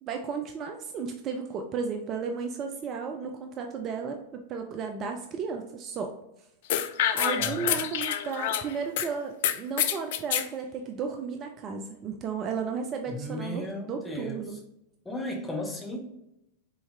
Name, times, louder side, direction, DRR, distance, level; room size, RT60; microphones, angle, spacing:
voice 1, 0.0-6.1 7.1-14.6 15.9-16.0, right 5 dB, 30° right, 4 dB, 0.4 m, -34 dB
sound 1, 6.7-9.1 9.4-10.5, left 10 dB, 55° left, 0.3 m, -27 dB
voice 2, 7.4-7.8 13.1-14.4 15.0-16.0, left 1 dB, 10° left, -1 dB, 1.1 m, -35 dB
4.1 x 3.8 x 2.8 m, 0.86 s
figure-of-eight pair, 90°, 0 cm